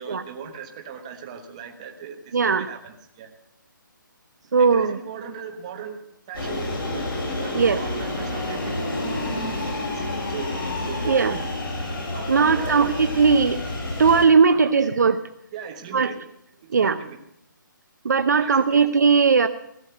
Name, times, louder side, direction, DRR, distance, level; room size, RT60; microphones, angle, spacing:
voice 1, 0.0-3.3 4.6-7.1 7.4-9.5 9.8-11.5 12.1-13.0 14.5-14.8 15.5-16.3 16.8-17.2 18.3-18.8, right 7 dB, 20° right, 3 dB, 1.2 m, -39 dB
voice 2, 2.3-2.7 4.5-5.0 7.5-7.8 11.0-11.4 12.3-13.6 14.0-15.2 15.9-16.1 16.7-17.0 18.0-19.5, right 5 dB, 55° right, 10 dB, 0.7 m, -18 dB
sound 1, 6.3-14.2, left 2 dB, 85° left, 5.1 m, -29 dB
17.0 x 6.5 x 7.7 m, 0.77 s
hypercardioid pair, 175°, 11 cm